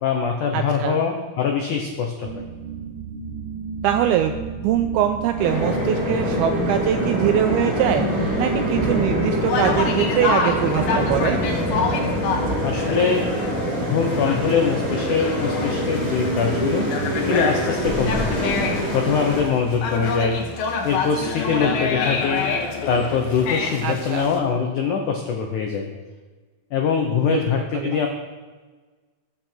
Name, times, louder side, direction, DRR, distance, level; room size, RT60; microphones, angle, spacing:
voice 1, 0.0-2.4 12.6-13.3 13.8-16.9 17.3-18.5 18.9-20.4 20.8-22.4 22.9-25.9 26.7-28.1, left 6 dB, 85° left, 3 dB, 1.7 m, -23 dB
voice 2, 0.5-1.0 3.8-4.3 4.6-8.0 8.4-11.4 23.8-24.3 27.2-28.0, right 11 dB, 85° right, 6 dB, 2.2 m, -23 dB
sound 1, 2.2-17.6, right 5 dB, 55° right, 3.1 m, -33 dB
sound 2, 5.4-19.4, equal, 10° left, 3.9 m, -25 dB
Conversation, 9.4-24.4, left 4 dB, 65° left, 3.0 m, -27 dB
20.5 x 7.8 x 4.5 m, 1.4 s
omnidirectional pair, 5.0 m